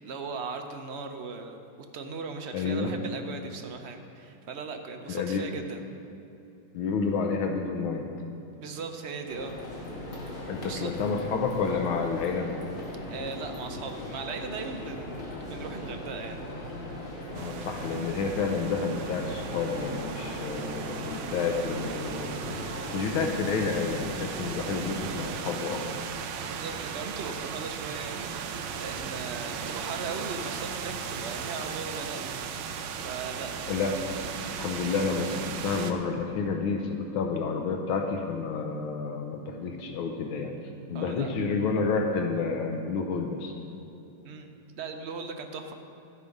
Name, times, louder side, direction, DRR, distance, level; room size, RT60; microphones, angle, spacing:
voice 1, 0.0-1.6 1.9-5.9 8.5-9.5 10.6-10.9 13.1-16.4 26.4-28.5 28.8-32.4 33.0-33.5 40.9-41.3 44.2-44.5 44.8-45.7, right 4 dB, 60° right, 5 dB, 0.7 m, -38 dB
voice 2, 2.5-2.9 5.1-5.4 6.7-8.1 10.5-12.5 17.3-22.4 22.9-25.8 33.7-33.9 34.5-40.5 40.9-43.5, left 4 dB, 85° left, 4 dB, 1.7 m, -30 dB
sound 1, 9.3-25.3, left 1 dB, 40° left, 2.0 m, -39 dB
sound 2, 17.3-35.9, right 6 dB, 85° right, 1.5 m, -37 dB
12.0 x 8.4 x 5.3 m, 2.9 s
omnidirectional pair, 2.2 m